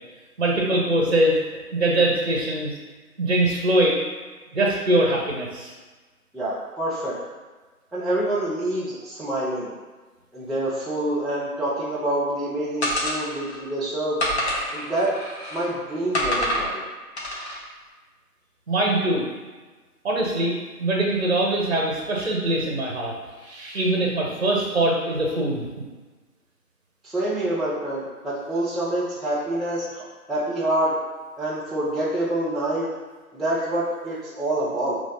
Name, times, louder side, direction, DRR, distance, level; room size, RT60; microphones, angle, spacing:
voice 1, 0.4-2.7 3.2-4.0 4.5-5.7 18.7-19.2 20.0-23.1 23.4-25.7, right 1 dB, 45° right, -1 dB, 0.8 m, -22 dB
voice 2, 6.3-7.2 7.9-9.7 10.3-14.2 14.7-15.2 15.5-16.8 27.0-30.0 30.3-31.0 31.4-32.9 33.3-35.0, right 1 dB, ahead, -9 dB, 0.4 m, -26 dB
sound 1, 12.8-13.6 14.2-15.7 16.1-16.7 17.2-17.6, equal, 45° left, 1.0 m, -27 dB
5.6 x 3.0 x 2.6 m, 1.3 s
figure-of-eight pair, 155°, 46 cm